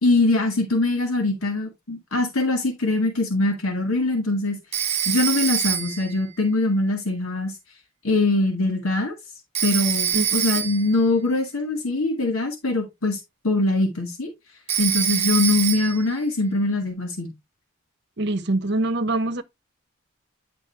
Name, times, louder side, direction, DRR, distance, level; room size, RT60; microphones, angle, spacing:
voice 1, 0.0-4.6 5.0-7.5 8.0-9.1 9.6-14.3 14.8-17.3, left 2 dB, 85° left, 1.8 m, -22 dB
Telephone, 4.7-6.1 9.5-10.9 14.7-16.1, right 9 dB, 30° right, 0.6 m, -25 dB
voice 2, 18.2-19.4, right 2 dB, 55° right, 0.9 m, -24 dB
9.1 x 5.2 x 3.3 m
head